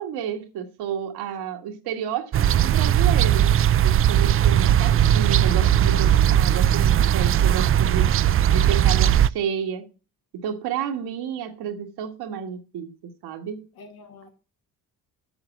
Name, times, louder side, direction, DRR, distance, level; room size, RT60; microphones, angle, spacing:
voice 1, 0.0-3.5 3.8-8.1 8.5-9.9 10.4-12.9 13.2-13.6, right 8 dB, 80° right, 1.7 m, -31 dB
sound 1, 2.3-9.3, right 10 dB, 35° right, 0.4 m, -18 dB
voice 2, 13.8-14.3, left 3 dB, 70° left, 2.5 m, -47 dB
7.9 x 6.9 x 7.2 m
cardioid pair, 80°, 38 cm